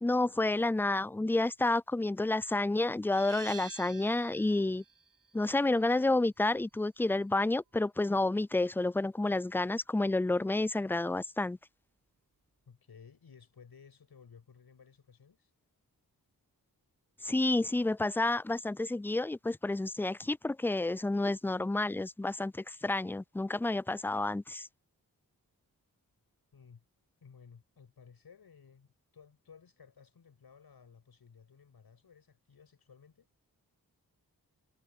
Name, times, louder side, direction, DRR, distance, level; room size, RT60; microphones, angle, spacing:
voice 1, 0.0-4.8 5.3-11.6 17.2-24.7, left 2 dB, 5° left, 0.3 m, -30 dB
sound 1, 3.1-8.5, right 5 dB, 55° right, 3.6 m, -52 dB
voice 2, 12.7-15.5 26.5-26.8 27.2-33.3, left 6 dB, 85° left, 6.6 m, -57 dB
wide cardioid pair, 75°, 37 cm